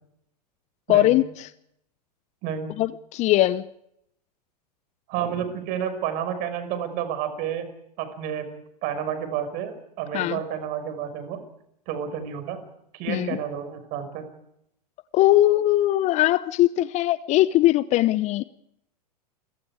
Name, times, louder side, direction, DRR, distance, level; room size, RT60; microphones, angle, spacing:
voice 1, 0.9-1.5 2.8-3.6 10.1-10.4 13.1-13.4 15.1-18.4, left 15 dB, 35° left, 18 dB, 0.8 m, -20 dB
voice 2, 2.4-2.7 5.1-7.7 8.0-8.5 8.8-11.4 11.9-12.6 12.9-14.2, right 8 dB, 45° right, 9 dB, 5.7 m, -30 dB
29.5 x 24.0 x 4.9 m, 0.77 s
figure-of-eight pair, 95°, 21 cm